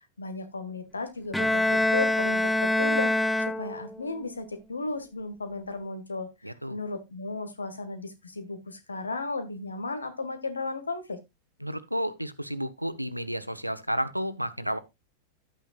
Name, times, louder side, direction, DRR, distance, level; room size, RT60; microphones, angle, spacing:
voice 1, 0.2-11.2, left 3 dB, 75° left, 1.7 m, -35 dB
Bowed string instrument, 1.3-4.1, left 1 dB, 5° left, 0.6 m, -25 dB
voice 2, 6.4-6.8 11.6-14.8, equal, 90° right, 0.9 m, -31 dB
11.5 x 8.9 x 2.4 m
figure-of-eight pair, 90°, 0 cm